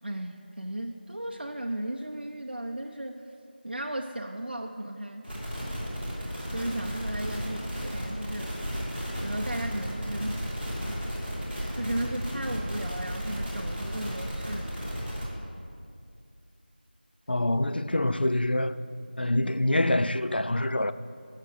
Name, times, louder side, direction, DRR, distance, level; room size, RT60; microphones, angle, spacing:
voice 1, 0.0-3.3 3.6-5.3 6.5-8.5 9.2-10.4 10.9-11.0 11.8-14.7, right 1 dB, 65° right, 0.6 m, -35 dB
sound 1, 5.2-15.2, equal, ahead, 0.9 m, -34 dB
voice 2, 17.3-18.8 19.2-20.9, left 1 dB, 65° left, 0.4 m, -25 dB
7.0 x 6.6 x 7.9 m
figure-of-eight pair, 180°, 6 cm